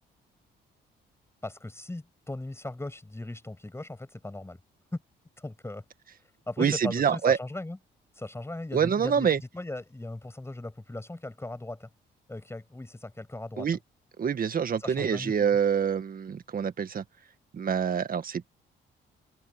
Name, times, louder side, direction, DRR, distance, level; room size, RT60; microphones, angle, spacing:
voice 1, 1.4-4.6 5.4-5.8 6.5-7.8 8.1-11.9 12.3-13.7 14.8-15.6, left 2 dB, 15° left, 6.4 m, -38 dB
voice 2, 6.6-7.4 8.7-9.4 13.6-13.8 14.2-17.0 17.5-18.4, right 7 dB, 45° right, 1.8 m, -26 dB
cardioid pair, 90°, 20 cm